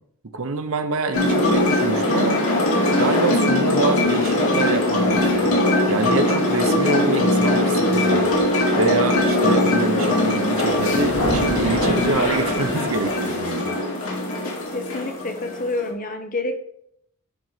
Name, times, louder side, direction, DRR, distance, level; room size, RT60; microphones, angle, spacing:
voice 1, 0.3-2.4 2.9-5.6 5.9-8.3 8.7-13.7, right 3 dB, 70° right, 8 dB, 0.8 m, -26 dB
sound 1, 1.1-15.9, left 1 dB, 80° left, 3.1 m, -20 dB
Thunder, 10.6-13.2, right 2 dB, 90° right, 1.3 m, -30 dB
voice 2, 14.7-16.6, left 2 dB, 40° left, 6 dB, 1.0 m, -28 dB
10.0 x 4.1 x 4.9 m, 0.73 s
head